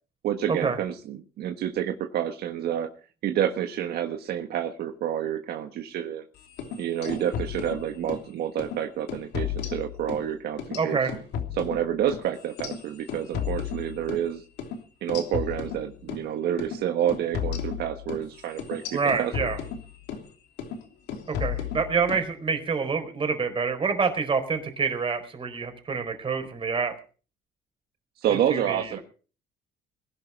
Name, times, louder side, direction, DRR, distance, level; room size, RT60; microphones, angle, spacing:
voice 1, 0.2-2.9 3.2-6.2 6.8-11.0 11.5-14.4 15.0-19.5 28.2-29.0, right 10 dB, 70° right, 5 dB, 1.5 m, -29 dB
sound 1, 6.5-8.3 8.6-8.8 9.1-10.3 10.6-14.3 14.6-14.8 15.1-16.3 16.6-16.8 17.1-20.3 20.6-20.8 21.1-22.3, left 8 dB, 85° left, 3.1 m, -34 dB
voice 2, 10.8-11.1 18.9-19.6 21.4-26.9 28.5-29.0, right 5 dB, 30° right, 6 dB, 4.5 m, -27 dB
21.0 x 11.5 x 4.7 m, 0.38 s
cardioid pair, 110°, 17 cm